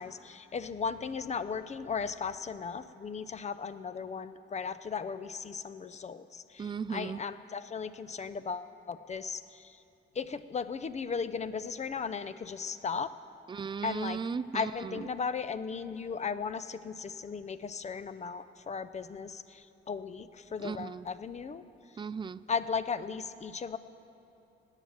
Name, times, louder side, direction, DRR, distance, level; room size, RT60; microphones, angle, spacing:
voice 1, 0.0-9.8 10.1-13.1 13.8-14.2 14.5-21.6 22.5-23.8, left 5 dB, 35° left, 13 dB, 0.6 m, -36 dB
voice 2, 6.6-7.2 13.5-15.1 20.6-21.0 22.0-22.4, right 6 dB, 25° right, 16 dB, 0.4 m, -36 dB
18.0 x 9.0 x 7.2 m, 2.8 s
cardioid pair, 90°, 20 cm